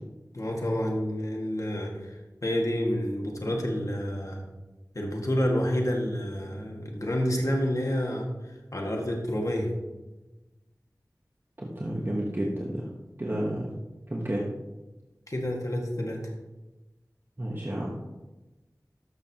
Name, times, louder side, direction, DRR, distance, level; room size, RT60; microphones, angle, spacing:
voice 1, 0.3-2.2 2.4-4.4 5.0-8.3 8.7-9.7 15.3-16.2, equal, 55° left, 0 dB, 1.8 m, -29 dB
voice 2, 11.6-12.9 13.2-13.7 14.1-14.5 17.4-17.9, right 1 dB, 30° right, -2 dB, 1.2 m, -31 dB
12.5 x 6.5 x 2.9 m, 1.1 s
wide cardioid pair, 45°, 7 cm